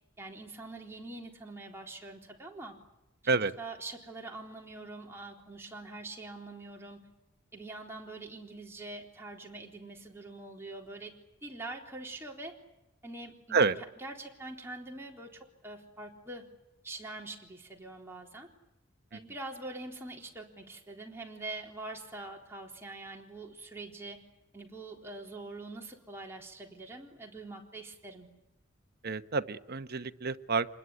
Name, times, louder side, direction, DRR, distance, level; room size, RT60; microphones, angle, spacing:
voice 1, 0.2-2.8 3.3-7.1 7.5-11.1 11.4-12.5 13.0-13.7 14.0-16.5 16.8-18.5 19.1-24.2 24.5-28.3, right 2 dB, 10° right, -1 dB, 3.9 m, -44 dB
voice 2, 29.0-30.7, right 4 dB, 50° right, 11 dB, 1.0 m, -28 dB
26.5 x 21.0 x 9.8 m, 0.91 s
head